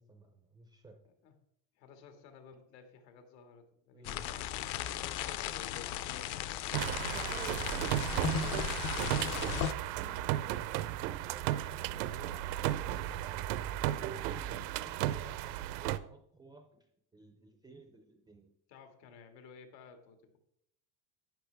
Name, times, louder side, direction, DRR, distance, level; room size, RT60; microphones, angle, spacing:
voice 1, 0.0-1.0 3.9-4.4 7.1-9.7 10.0-11.5 11.9-13.4 13.8-18.5, right 2 dB, 10° right, 5 dB, 0.3 m, -54 dB
voice 2, 1.8-4.4 6.2-6.6 18.7-20.4, left 5 dB, 90° left, 6 dB, 2.1 m, -56 dB
sound 1, 4.0-9.7, left 12 dB, 45° left, 0.6 m, -36 dB
sound 2, 6.7-16.0, right 13 dB, 80° right, 0.7 m, -34 dB
12.0 x 8.8 x 3.4 m, 0.72 s
supercardioid pair, 150°, 49 cm